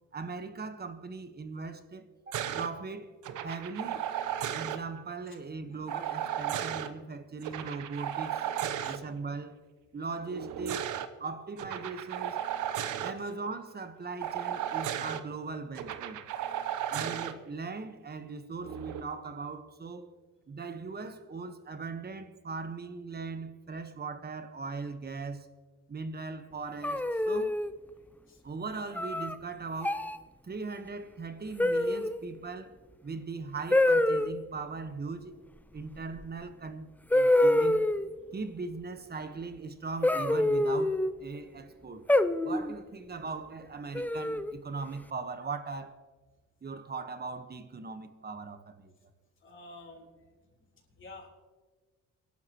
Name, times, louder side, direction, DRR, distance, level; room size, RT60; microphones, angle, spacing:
voice 1, 0.1-3.1 3.4-4.0 4.5-8.4 8.8-9.6 9.9-10.9 11.2-12.4 13.0-16.2 16.9-20.1 20.5-25.5 25.9-27.6 28.4-30.1 30.4-32.8 33.0-35.3 35.7-37.9 38.3-42.1 42.4-46.0 46.6-48.9, right 4 dB, 35° right, 1.3 m, -39 dB
sound 1, 2.3-2.7 3.2-4.8 5.9-6.9 7.4-9.0 10.3-11.1 11.6-13.1 14.2-15.2 15.8-17.3 18.6-19.0, right 10 dB, 85° right, 0.9 m, -34 dB
sound 2, 26.8-27.7 29.0-29.3 29.8-30.2 31.6-32.2 33.7-34.3 36.2-36.3 37.1-38.1 40.0-41.1 42.1-42.7 43.9-44.5, left 1 dB, 5° left, 0.6 m, -26 dB
voice 2, 49.4-50.1 51.0-51.3, left 2 dB, 40° left, 3.9 m, -50 dB
24.5 x 11.5 x 3.1 m
cardioid pair, 90°, 30 cm